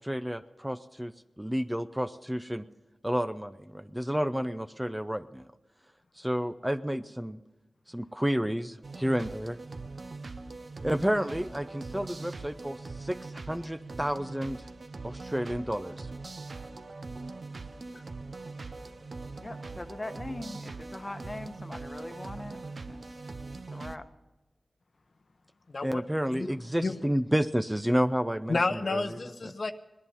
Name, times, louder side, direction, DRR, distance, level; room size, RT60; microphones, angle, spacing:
voice 1, 0.0-2.6 3.0-5.4 6.2-7.4 7.9-9.6 10.8-14.6 15.0-16.1 25.8-29.0, equal, 10° right, 10 dB, 0.6 m, -30 dB
sound 1, 8.8-24.0, right 3 dB, 60° right, 0.7 m, -42 dB
voice 2, 19.4-22.6 22.9-23.2 23.7-24.0, left 2 dB, 30° left, 9 dB, 1.1 m, -41 dB
voice 3, 25.7-26.0 26.3-26.5 26.8-27.0 28.5-29.7, left 3 dB, 55° left, 8 dB, 0.8 m, -30 dB
19.5 x 11.0 x 5.7 m, 1.1 s
wide cardioid pair, 65°, 0 cm